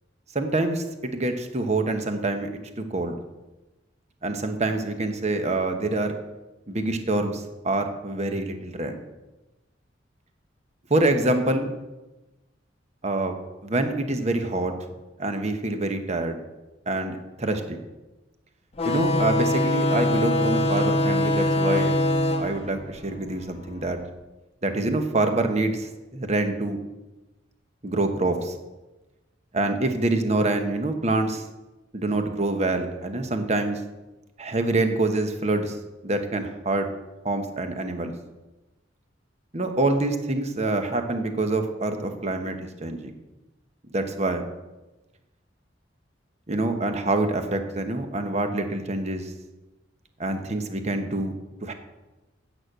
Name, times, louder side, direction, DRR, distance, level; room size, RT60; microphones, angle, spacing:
voice 1, 0.3-2.5 2.8-3.1 4.2-6.1 6.7-9.0 10.9-11.7 13.0-14.7 15.2-16.4 16.9-17.8 18.8-21.9 22.4-24.0 24.6-26.8 27.8-28.6 29.5-31.4 31.9-33.8 34.4-35.7 36.0-36.9 37.2-38.1 39.5-43.1 43.9-44.4 46.5-49.3 50.2-51.7, right 2 dB, 35° right, 6 dB, 1.1 m, -26 dB
sound 1, 18.8-23.9, left 1 dB, 35° left, 0.8 m, -24 dB
9.3 x 6.3 x 8.0 m, 1.1 s
head